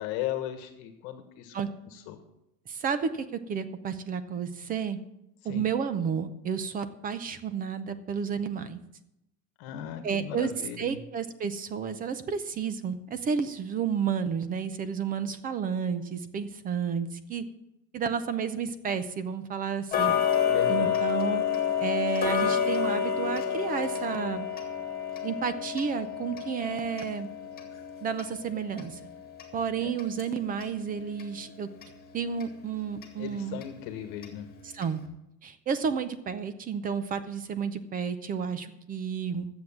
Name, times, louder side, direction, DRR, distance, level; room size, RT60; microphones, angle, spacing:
voice 1, 0.0-1.5 1.9-2.2 5.4-5.7 9.6-11.0 20.5-21.1 29.8-29.9 33.1-34.5, left 11 dB, 45° left, 8 dB, 1.4 m, -37 dB
voice 2, 2.7-5.0 5.4-8.8 10.0-10.5 10.8-17.4 17.9-20.2 20.7-21.4 21.8-24.5 25.2-27.3 28.0-29.0 29.5-31.7 32.1-33.6 34.7-35.0 35.4-39.5, right 6 dB, 20° right, 13 dB, 0.5 m, -31 dB
Tick-tock, 19.9-30.8 31.2-31.3 31.8-31.9 32.4-32.5 33.0-33.1 33.6-33.7 34.2-34.3 34.8-34.9, left 8 dB, 20° left, 2.1 m, -29 dB
12.0 x 7.9 x 7.2 m, 0.86 s
supercardioid pair, 140°, 49 cm